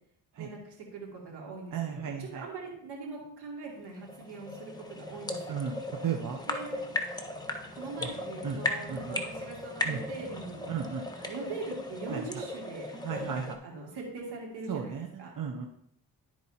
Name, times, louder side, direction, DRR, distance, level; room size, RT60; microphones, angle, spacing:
voice 1, 0.4-5.6 6.5-6.8 7.7-10.6 11.2-15.3, right 3 dB, 85° right, -2 dB, 2.6 m, -42 dB
voice 2, 1.7-2.4 5.5-5.8 6.0-6.4 8.0-8.1 8.4-8.6 8.9-9.2 9.8-10.0 10.7-11.0 12.1-12.3 13.0-13.6 14.7-15.7, right 7 dB, 55° right, 2 dB, 1.0 m, -34 dB
sound 1, 3.7-13.6, left 2 dB, 10° left, 1.3 m, -37 dB
12.5 x 4.6 x 2.9 m, 0.72 s
supercardioid pair, 65°, 39 cm